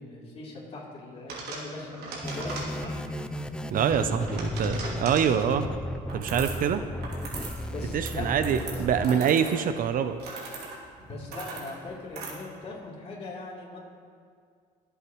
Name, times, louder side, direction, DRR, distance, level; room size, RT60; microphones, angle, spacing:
voice 1, 0.0-3.1 3.9-4.2 7.6-9.2 11.0-13.8, left 2 dB, 35° left, -4 dB, 3.3 m, -40 dB
sound 1, 1.3-3.1 3.9-5.4 6.1-6.7 7.0-7.6 7.9-12.3, right 3 dB, 75° right, 2.8 m, -40 dB
sound 2, 2.2-9.1, left 1 dB, 5° left, 0.5 m, -34 dB
voice 2, 3.7-5.7 6.1-6.8 7.9-10.2, right 8 dB, 55° right, 10 dB, 0.6 m, -25 dB
24.0 x 8.1 x 3.1 m, 2.2 s
cardioid pair, 110°, 17 cm